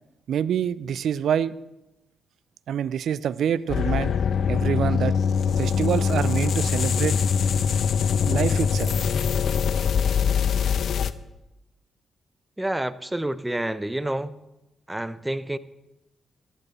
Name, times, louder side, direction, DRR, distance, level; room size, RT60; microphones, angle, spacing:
voice 1, 0.3-1.5 2.7-4.1 4.5-5.2 5.6-7.2 8.2-9.1, right 9 dB, 70° right, 18 dB, 0.4 m, -26 dB
sound 1, 3.7-11.1, left 6 dB, 65° left, 0.5 m, -23 dB
voice 2, 12.6-14.3 14.9-15.6, right 1 dB, 10° right, 15 dB, 0.8 m, -28 dB
14.5 x 11.0 x 4.3 m, 0.95 s
hypercardioid pair, 40°, 0 cm